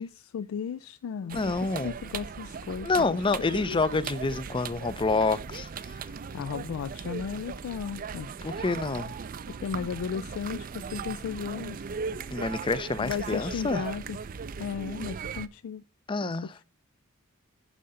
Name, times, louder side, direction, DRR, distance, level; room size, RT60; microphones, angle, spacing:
voice 1, 0.0-1.6 1.8-3.1 3.5-3.8 6.3-8.3 9.5-11.9 13.0-14.2 14.6-15.8 16.2-16.4, left 7 dB, 90° left, 0.3 m, -35 dB
voice 2, 1.3-1.9 2.8-5.9 8.4-9.2 12.3-13.8 16.1-16.6, left 3 dB, 25° left, 0.4 m, -28 dB
sound 1, 1.3-15.5, right 5 dB, 45° right, 0.4 m, -38 dB
11.0 x 3.8 x 5.2 m
head